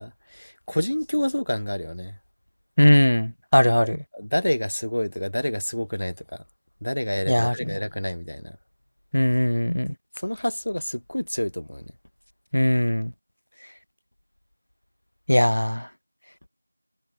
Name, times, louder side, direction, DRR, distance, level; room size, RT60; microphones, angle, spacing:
voice 1, 0.0-2.2 4.1-6.4 6.8-8.6 10.1-11.9, left 1 dB, 40° left, 1.0 m, -28 dB
voice 2, 2.8-4.0 7.3-7.8 9.1-9.9 12.5-13.1 15.3-15.9, equal, 60° left, 0.4 m, -20 dB
figure-of-eight pair, 180°, 0 cm